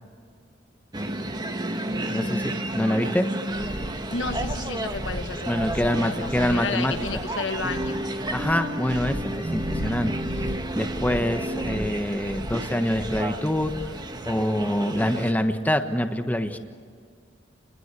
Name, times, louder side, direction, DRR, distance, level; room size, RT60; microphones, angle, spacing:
sound 1, 0.9-15.3, right 1 dB, 25° right, 1.4 m, -32 dB
voice 1, 2.0-3.2 5.4-6.9 8.3-10.1 10.7-13.7 14.2-16.6, equal, 10° left, 7 dB, 1.3 m, -25 dB
sound 2, 3.5-14.0, equal, 50° left, 3.2 m, -36 dB
voice 2, 4.1-8.1, left 4 dB, 90° left, 8 dB, 1.4 m, -32 dB
29.5 x 21.0 x 8.3 m, 2.1 s
head